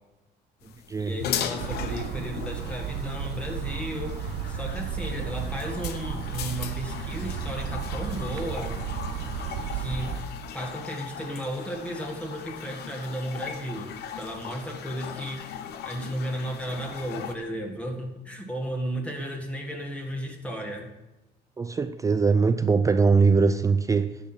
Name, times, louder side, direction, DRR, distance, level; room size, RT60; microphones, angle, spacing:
sound 1, 0.6-17.4, left 9 dB, 75° left, 0.8 m, -38 dB
voice 1, 1.0-8.8 9.7-10.2 10.5-15.5 15.8-20.9, equal, 5° left, 1.7 m, -34 dB
sound 2, 1.6-10.2, right 7 dB, 85° right, 0.9 m, -33 dB
voice 2, 21.6-24.2, right 4 dB, 20° right, 0.4 m, -21 dB
10.5 x 6.1 x 5.9 m
cardioid pair, 110°, 17 cm